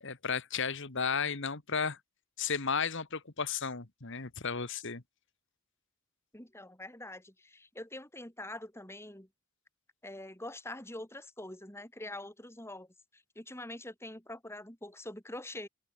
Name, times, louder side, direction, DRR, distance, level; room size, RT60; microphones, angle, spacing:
voice 1, 0.0-2.0 2.4-5.0, left 6 dB, 60° left, 1.6 m, -34 dB
voice 2, 6.3-9.3 10.0-12.9 13.1-15.7, left 1 dB, 10° left, 4.5 m, -44 dB
head